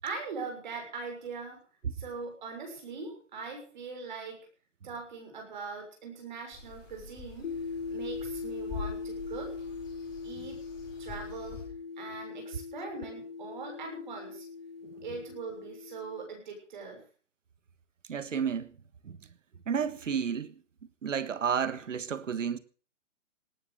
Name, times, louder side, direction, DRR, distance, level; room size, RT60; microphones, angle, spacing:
voice 1, 0.0-1.6 1.9-4.4 4.8-7.5 7.9-9.5 10.2-10.6 11.0-11.6 12.0-14.5 15.0-17.0, right 4 dB, 40° right, 6.6 m, -41 dB
sound 1, 6.5-11.6, left 4 dB, 10° left, 4.9 m, -45 dB
sound 2, 7.4-16.3, left 5 dB, 50° left, 1.1 m, -40 dB
voice 2, 18.1-18.7 19.0-19.2 19.7-20.5 21.0-22.6, right 7 dB, 80° right, 1.6 m, -31 dB
18.5 x 10.0 x 6.5 m
hypercardioid pair, 180°, 37 cm